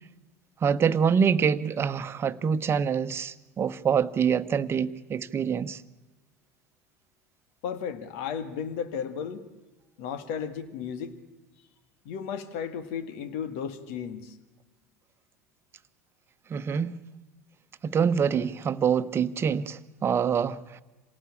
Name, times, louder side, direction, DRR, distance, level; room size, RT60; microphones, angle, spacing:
voice 1, 0.6-5.8 16.5-17.0 17.8-20.8, right 7 dB, 30° right, 1.2 m, -25 dB
voice 2, 7.6-9.5 10.0-11.1 12.1-14.4, left 7 dB, 60° left, 2.0 m, -34 dB
27.5 x 18.0 x 8.7 m
hypercardioid pair, 75°, 8 cm